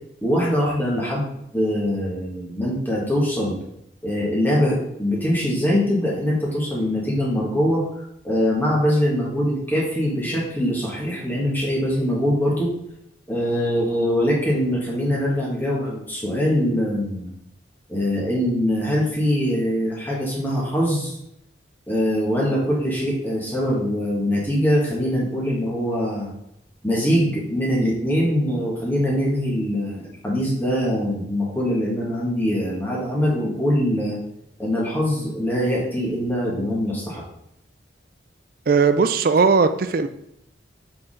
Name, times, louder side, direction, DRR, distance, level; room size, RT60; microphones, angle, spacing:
voice 1, 0.2-3.6 4.0-7.8 8.2-12.7 13.3-17.3 17.9-21.2 21.9-26.3 26.8-34.2 34.6-37.2, equal, 10° left, -5 dB, 2.0 m, -23 dB
voice 2, 38.7-40.1, right 4 dB, 50° right, 10 dB, 0.4 m, -18 dB
7.5 x 4.4 x 3.8 m, 0.78 s
head